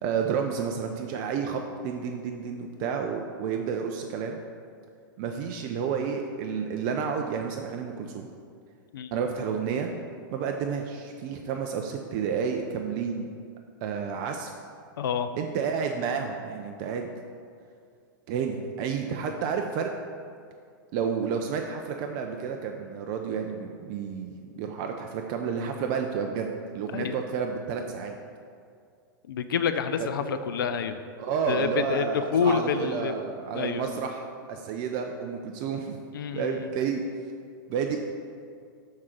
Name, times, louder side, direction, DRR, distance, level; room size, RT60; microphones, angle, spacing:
voice 1, 0.0-4.4 5.2-8.3 9.1-9.9 10.3-13.3 13.8-14.5 15.4-17.1 18.3-19.9 20.9-28.2 30.3-30.4 31.2-36.0 36.3-37.0 37.7-38.0, right 6 dB, 45° right, 3 dB, 0.5 m, -30 dB
voice 2, 15.0-15.3 26.9-27.1 29.3-31.0 31.5-33.1 33.5-33.9 36.1-36.7, left 7 dB, 80° left, 9 dB, 0.4 m, -28 dB
6.4 x 3.7 x 5.9 m, 2.3 s
hypercardioid pair, 115°, 11 cm